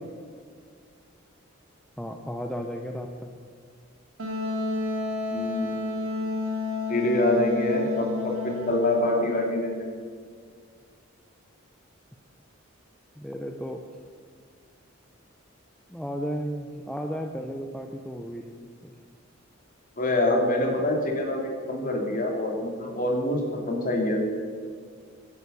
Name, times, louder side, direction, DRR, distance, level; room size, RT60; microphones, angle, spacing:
voice 1, 2.0-3.4 13.2-13.8 15.9-18.5 18.8-18.9, equal, 5° left, 3 dB, 0.6 m, -34 dB
Wind instrument woodwind instrument, 4.2-9.8, left 3 dB, 70° right, 2.1 m, -31 dB
voice 2, 5.3-5.8 6.9-9.7 20.0-24.2, left 1 dB, 40° left, 1 dB, 2.6 m, -25 dB
11.0 x 11.0 x 7.0 m, 2.1 s
head